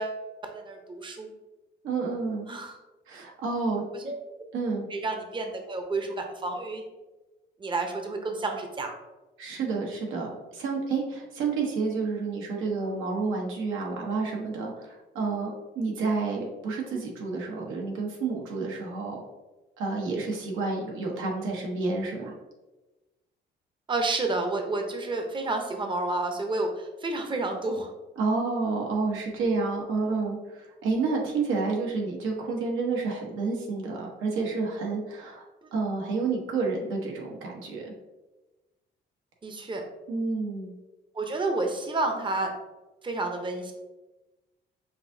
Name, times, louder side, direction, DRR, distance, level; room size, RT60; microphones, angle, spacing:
voice 1, 0.0-1.3 2.5-2.8 3.9-4.2 4.9-6.8 7.6-9.0 23.9-27.9 31.1-31.3 35.6-35.8 39.4-39.8 41.1-42.5 43.0-43.7, right 2 dB, 25° right, 3 dB, 0.7 m, -30 dB
voice 2, 1.8-2.5 3.1-3.8 4.5-4.9 9.4-19.2 19.8-22.3 28.2-35.4 35.7-37.9 40.1-40.7, right 4 dB, 85° right, -1 dB, 1.0 m, -29 dB
5.8 x 2.6 x 2.6 m, 1.1 s
cardioid pair, 90°, 20 cm